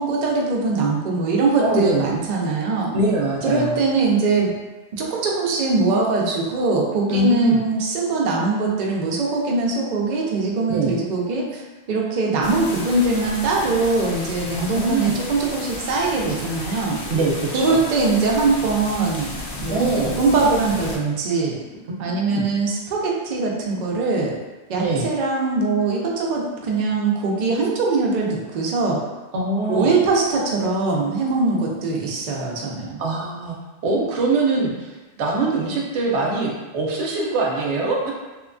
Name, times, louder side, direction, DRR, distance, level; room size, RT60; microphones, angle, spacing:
voice 1, 0.0-2.9 3.4-4.5 5.0-11.6 11.9-17.0 17.5-19.3 19.6-19.9 20.2-21.6 22.0-24.4 24.7-29.0 29.7-33.0, right 3 dB, 55° right, -2 dB, 0.5 m, -22 dB
voice 2, 1.6-2.1 2.9-3.8 7.1-7.6 10.7-11.0 14.6-15.1 17.1-17.8 19.7-20.2 21.9-22.4 24.8-25.1 29.3-29.9 33.0-33.5 33.8-38.1, right 3 dB, 80° right, -2 dB, 0.9 m, -23 dB
sound 1, 12.4-21.0, left 1 dB, 65° left, 0.7 m, -33 dB
2.9 x 2.2 x 2.5 m, 1.1 s
omnidirectional pair, 1.1 m